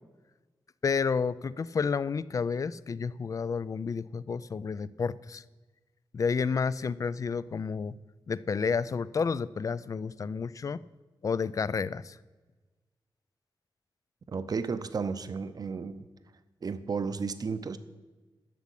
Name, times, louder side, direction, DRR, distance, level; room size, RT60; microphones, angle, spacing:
voice 1, 0.8-5.4 6.1-8.0 8.3-10.8 11.2-12.2, left 5 dB, 40° left, 18 dB, 0.3 m, -30 dB
voice 2, 14.3-16.0 16.6-17.8, right 5 dB, 45° right, 13 dB, 0.7 m, -33 dB
12.0 x 7.2 x 8.3 m, 1.3 s
wide cardioid pair, 175°, 9 cm